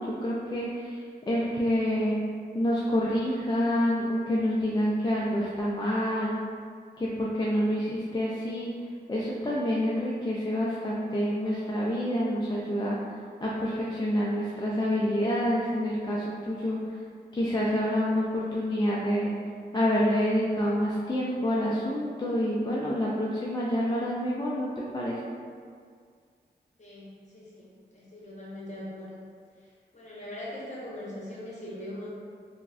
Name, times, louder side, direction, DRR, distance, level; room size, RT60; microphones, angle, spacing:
voice 1, 0.0-2.2 2.5-6.4 7.0-8.7 9.1-13.0 13.4-17.0 17.3-19.3 19.7-25.2, equal, 25° left, -6 dB, 0.3 m, -27 dB
voice 2, 26.8-29.2 29.6-32.1, left 1 dB, 40° left, -6 dB, 0.8 m, -41 dB
3.3 x 2.1 x 2.4 m, 2.1 s
cardioid pair, 55°, 18 cm